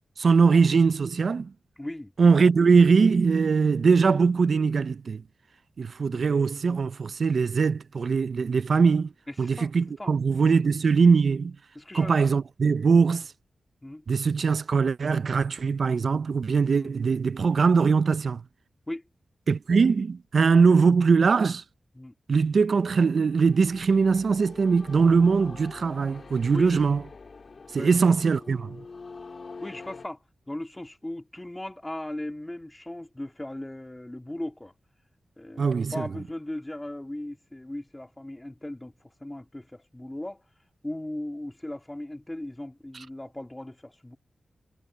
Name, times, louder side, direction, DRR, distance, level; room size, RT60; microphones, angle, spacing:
voice 1, 0.2-1.5 2.2-5.2 5.8-9.1 9.4-11.6 11.9-13.3 14.1-18.4 19.5-21.6 22.3-27.0 27.7-28.8 35.6-36.1, right 5 dB, 60° right, 0.4 m, -21 dB
voice 2, 1.8-2.1 6.1-6.2 9.3-9.7 10.0-10.1 11.7-12.1 13.8-14.0 16.8-16.9 18.9-19.0 21.9-22.1 26.5-26.8 27.8-27.9 29.6-30.2 30.5-34.7 35.4-38.9 39.2-40.4 40.8-44.2, left 1 dB, 10° left, 2.5 m, -37 dB
sound 1, 23.1-30.1, left 4 dB, 50° left, 1.5 m, -45 dB
wide cardioid pair, 130°, 0 cm